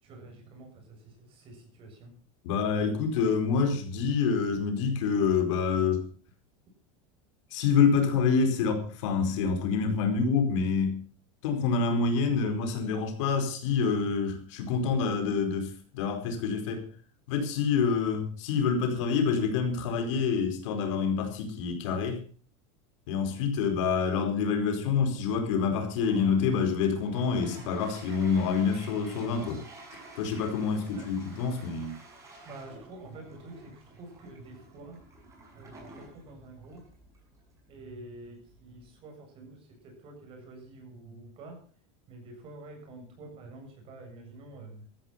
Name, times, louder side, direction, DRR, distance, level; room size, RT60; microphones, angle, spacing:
voice 1, 0.0-2.1 30.6-31.1 32.4-35.0 35.5-36.8 37.7-41.6 42.1-44.9, right 2 dB, 35° right, 3 dB, 7.4 m, -48 dB
voice 2, 2.4-6.0 7.5-11.0 11.4-16.8 17.3-22.2 23.1-29.6 29.9-32.0, left 5 dB, 70° left, 6 dB, 4.7 m, -27 dB
Toilet flush, 25.8-39.0, right 2 dB, 20° right, 6.7 m, -51 dB
14.5 x 14.0 x 5.8 m, 0.43 s
supercardioid pair, 160°, 16 cm